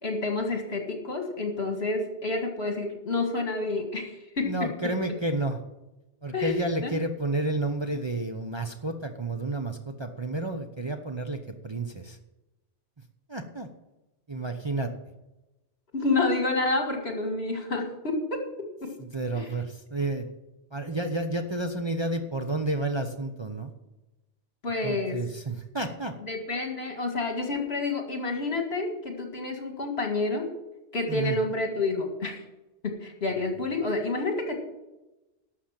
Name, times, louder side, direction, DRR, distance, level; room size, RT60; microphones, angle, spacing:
voice 1, 0.0-4.5 6.3-6.5 6.8-6.9 15.9-18.4 18.8-18.9 19.3-19.5 24.6-25.2 26.2-30.5 30.9-32.4 32.8-34.6, left 3 dB, 60° left, 3 dB, 2.3 m, -29 dB
voice 2, 4.4-5.6 6.2-12.2 13.3-13.7 14.3-14.9 19.0-20.3 20.7-23.7 24.8-26.1 31.1-31.4, right 2 dB, 25° right, 4 dB, 0.8 m, -30 dB
12.0 x 6.6 x 7.5 m, 0.99 s
omnidirectional pair, 1.2 m